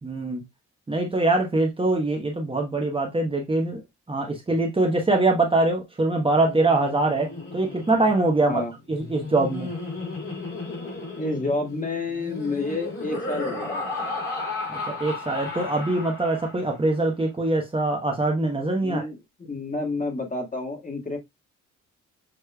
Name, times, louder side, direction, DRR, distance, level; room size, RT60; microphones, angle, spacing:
voice 1, 0.0-0.4 0.9-3.8 4.1-8.6 8.9-9.7 14.7-19.0, right 2 dB, 20° right, 1.0 m, -23 dB
Laughter, 6.3-16.8, left 3 dB, 45° left, 2.9 m, -34 dB
voice 2, 11.2-13.8 18.8-21.2, left 3 dB, 25° left, 1.7 m, -29 dB
6.5 x 3.2 x 2.2 m
cardioid pair, 90°, 30 cm